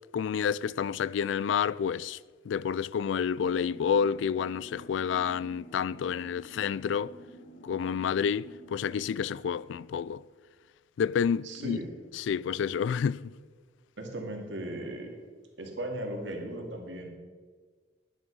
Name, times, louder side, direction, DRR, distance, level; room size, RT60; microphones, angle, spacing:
voice 1, 0.1-2.2 2.5-7.2 7.6-10.2 11.0-11.8 12.1-13.4, left 7 dB, 75° left, 0.3 m, -29 dB
sound 1, 3.4-9.2, right 1 dB, 50° left, 1.1 m, -50 dB
voice 2, 11.4-11.9 14.0-15.1 15.6-17.1, right 1 dB, 75° right, 2.3 m, -37 dB
11.0 x 9.6 x 5.4 m
head